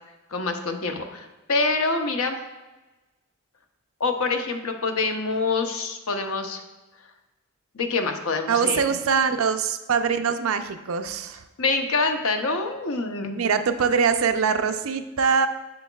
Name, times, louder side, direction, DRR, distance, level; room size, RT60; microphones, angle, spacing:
voice 1, 0.3-2.4 4.0-6.6 7.7-8.8 11.6-13.4, left 3 dB, 80° left, 5 dB, 0.8 m, -26 dB
voice 2, 8.5-11.4 13.3-15.5, right 6 dB, 70° right, 8 dB, 0.5 m, -23 dB
7.7 x 7.1 x 2.3 m, 1.1 s
head